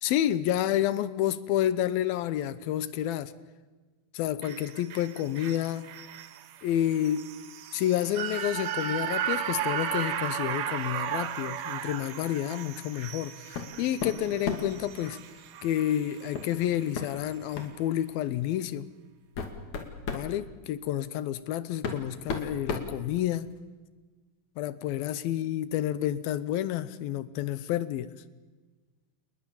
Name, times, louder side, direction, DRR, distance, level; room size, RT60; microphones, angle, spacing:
voice 1, 0.0-3.3 4.1-5.9 6.6-7.3 7.7-15.2 15.6-18.9 20.1-23.5 24.6-28.1, left 12 dB, 75° left, 15 dB, 2.6 m, -29 dB
sound 1, 4.4-16.8 17.1-17.2, right 9 dB, 65° right, 2.5 m, -35 dB
sound 2, 13.5-13.7 14.0-14.8 16.3-16.5 16.9-17.1 17.5-17.8 18.6-18.7 19.2-20.3 21.3-21.4 21.8-23.6, left 5 dB, 50° left, 3.6 m, -34 dB
29.0 x 20.5 x 7.2 m, 1.3 s
omnidirectional pair, 4.5 m